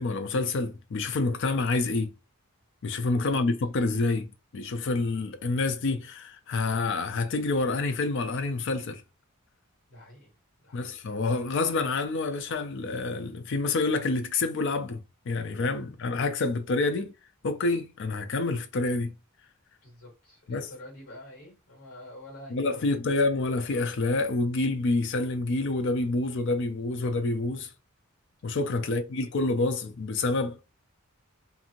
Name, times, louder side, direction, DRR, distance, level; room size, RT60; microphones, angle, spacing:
voice 1, 0.0-2.1 2.8-9.0 10.7-15.0 15.3-17.1 17.4-19.1 20.5-20.7 22.5-27.7 28.4-30.6, left 3 dB, 55° left, 0.4 m, -28 dB
voice 2, 9.9-10.3 10.6-11.0 19.8-23.2, left 1 dB, 75° left, 1.5 m, -48 dB
2.8 x 2.7 x 2.5 m
head